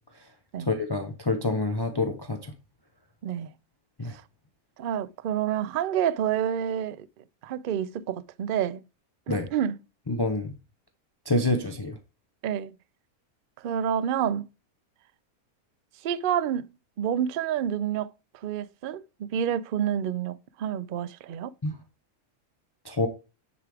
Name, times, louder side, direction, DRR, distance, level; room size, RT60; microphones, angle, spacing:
voice 1, 0.7-2.4 4.0-4.1 9.3-9.5 10.1-10.5 11.3-12.0 21.6-21.7 22.9-23.1, left 2 dB, 20° left, 0.6 m, -27 dB
voice 2, 4.8-7.1 7.4-8.8 9.3-9.8 12.4-12.7 13.6-14.4 16.0-16.7 17.0-21.5, right 9 dB, 70° right, 0.4 m, -28 dB
9.6 x 4.8 x 3.4 m
omnidirectional pair, 1.6 m